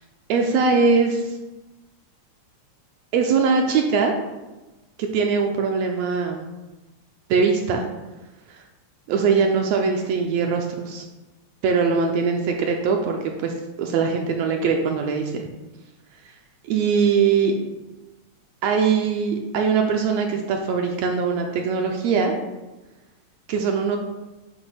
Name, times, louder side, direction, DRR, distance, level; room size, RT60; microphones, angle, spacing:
voice 1, 0.3-1.4 3.1-4.1 5.0-6.5 7.3-7.8 8.5-8.6 9.1-11.0 11.6-13.5 13.8-15.5 16.6-17.5 18.6-22.3 23.5-24.0, right 5 dB, 80° right, 2 dB, 1.6 m, -21 dB
7.9 x 3.0 x 5.6 m, 1.1 s
omnidirectional pair, 3.3 m